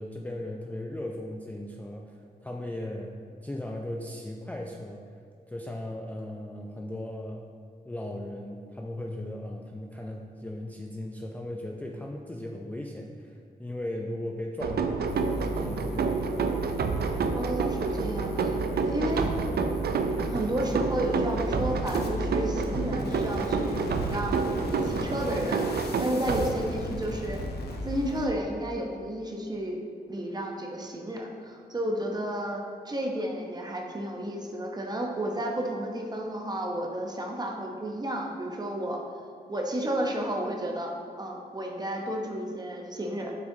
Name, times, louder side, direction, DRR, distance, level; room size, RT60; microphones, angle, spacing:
voice 1, 0.0-5.0 5.5-7.5 7.9-16.2, left 1 dB, 10° left, -1 dB, 0.3 m, -37 dB
sound 1, 14.6-27.1, right 4 dB, 80° right, 0.4 m, -29 dB
sound 2, 15.1-28.3, left 1 dB, 90° left, 0.7 m, -36 dB
voice 2, 17.4-18.6 18.9-19.3 20.3-24.6 24.8-25.7 26.0-27.4 27.8-29.8 30.1-39.0 39.5-40.9 41.2-43.3, right 1 dB, 25° right, 0 dB, 0.7 m, -32 dB
7.4 x 6.2 x 2.7 m, 2.2 s
wide cardioid pair, 135°, 16 cm